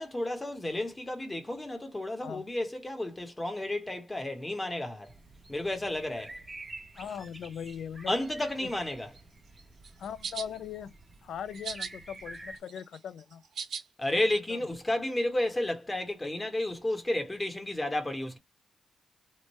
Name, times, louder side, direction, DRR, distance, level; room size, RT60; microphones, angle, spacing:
voice 1, 0.0-5.1 5.5-6.4 8.1-9.1 14.0-18.4, left 1 dB, 20° left, 0.9 m, -32 dB
sound 1, 5.1-12.6, right 2 dB, 20° right, 0.8 m, -49 dB
voice 2, 7.0-8.1 8.6-8.7 10.0-10.9 11.2-13.4 14.5-14.6, left 8 dB, 75° left, 0.4 m, -40 dB
sound 2, 9.8-10.5 11.5-11.9 12.3-13.8, right 6 dB, 80° right, 1.0 m, -38 dB
3.1 x 2.1 x 4.1 m
cardioid pair, 90°, 0 cm